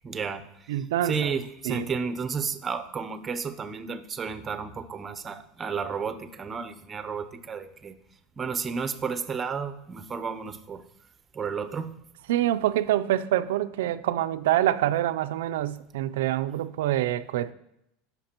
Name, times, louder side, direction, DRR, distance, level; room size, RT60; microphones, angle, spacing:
voice 1, 0.0-0.5 1.0-7.9 8.4-10.8 11.3-12.0, right 5 dB, 20° right, 0.7 m, -32 dB
voice 2, 0.7-1.3 1.6-1.9 12.3-17.5, right 13 dB, 85° right, 0.4 m, -26 dB
16.0 x 5.8 x 2.9 m
supercardioid pair, 125°, 0 cm